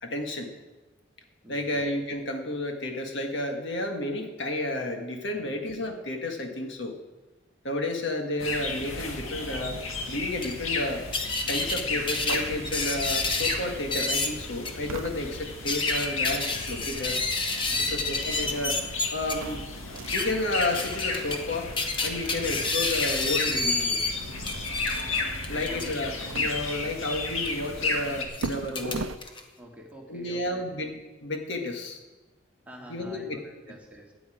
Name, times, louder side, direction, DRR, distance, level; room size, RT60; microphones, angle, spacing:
voice 1, 0.0-0.5 1.5-6.9 7.6-9.8 10.1-11.0 11.5-17.2 17.8-18.8 19.1-19.6 20.1-21.7 22.0-24.0 25.5-29.1 30.1-32.0 32.9-33.4, left 1 dB, 60° left, 3 dB, 1.5 m, -31 dB
voice 2, 1.4-1.8 5.4-5.5 17.6-18.0 25.5-25.9 29.6-30.7 32.7-34.1, right 1 dB, 5° right, -1 dB, 2.0 m, -47 dB
sound 1, 8.4-28.3, left 3 dB, 85° left, 1.8 m, -34 dB
sound 2, 10.4-10.5 11.1-11.8 12.1-13.6 13.9-14.3 14.6-14.7 15.4-19.3 20.0-20.3 20.6-21.4 21.8-24.1 24.4-26.0 27.3-27.5 28.3-29.4, left 3 dB, 25° left, 1.2 m, -29 dB
sound 3, 12.2-29.2, right 4 dB, 80° right, 0.6 m, -43 dB
16.5 x 9.9 x 4.9 m, 1.2 s
head